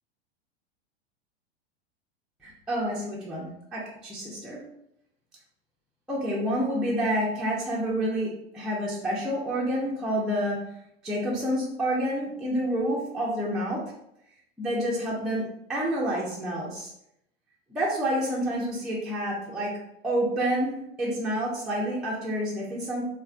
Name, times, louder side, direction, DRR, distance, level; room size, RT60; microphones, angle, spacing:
voice 1, 2.4-4.6 6.1-10.6 11.0-13.8 14.6-16.9 17.7-19.7 20.0-20.7 21.0-23.0, equal, ahead, -6 dB, 0.4 m, -28 dB
3.1 x 2.1 x 2.4 m, 0.78 s
hypercardioid pair, 95°, 32 cm